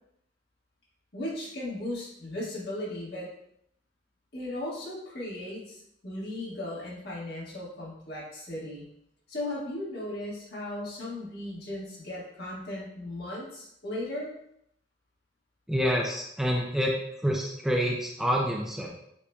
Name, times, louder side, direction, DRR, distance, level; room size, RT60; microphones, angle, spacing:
voice 1, 1.1-3.3 4.3-8.9 9.3-14.3, left 1 dB, 60° left, -6 dB, 1.7 m, -36 dB
voice 2, 15.7-17.0 17.2-18.9, equal, 5° right, -1 dB, 0.4 m, -27 dB
6.9 x 2.9 x 2.3 m, 0.75 s
head